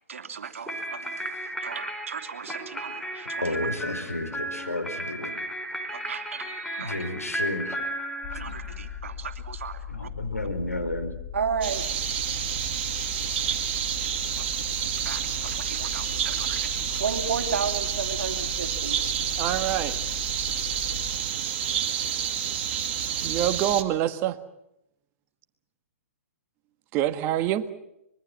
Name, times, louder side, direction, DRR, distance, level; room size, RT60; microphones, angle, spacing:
voice 1, 0.1-1.1 1.6-3.7 5.9-7.1 8.3-10.1 11.3-11.8 13.3-13.6 14.0-14.4 15.0-19.0, right 6 dB, 60° right, 6 dB, 3.0 m, -34 dB
sound 1, 0.7-9.0, right 1 dB, 5° left, 4.6 m, -34 dB
voice 2, 3.4-5.3 6.8-7.8 9.9-11.1, left 2 dB, 85° left, 7 dB, 5.0 m, -31 dB
sound 2, 8.2-21.2, left 8 dB, 30° left, 4.3 m, -39 dB
sound 3, 11.6-23.8, right 9 dB, 45° right, 2.2 m, -29 dB
voice 3, 19.4-19.9 23.2-24.4 26.9-27.6, right 12 dB, 30° right, 11 dB, 1.5 m, -25 dB
25.0 x 22.5 x 7.5 m, 0.83 s
figure-of-eight pair, 120°, 8 cm